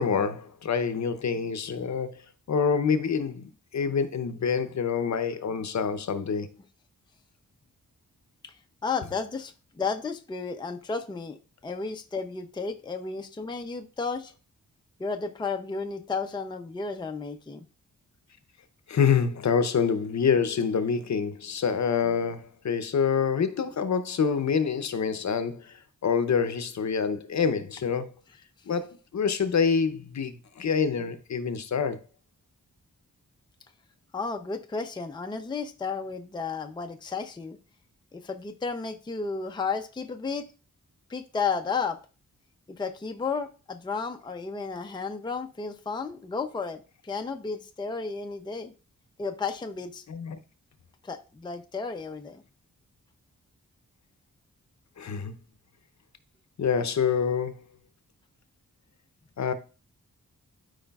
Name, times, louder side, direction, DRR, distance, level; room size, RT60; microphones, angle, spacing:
voice 1, 0.0-2.2 2.5-6.5 18.9-28.1 28.7-32.0 50.1-50.4 55.0-55.3 56.6-57.6 59.4-59.5, left 6 dB, 60° left, 0.6 m, -26 dB
voice 2, 8.8-11.4 11.6-14.3 15.0-17.7 34.1-37.6 38.1-40.5 41.1-42.0 42.7-48.7 49.2-50.0 51.0-52.4, left 4 dB, 15° left, 0.4 m, -33 dB
12.5 x 4.9 x 2.3 m
wide cardioid pair, 175°, 33 cm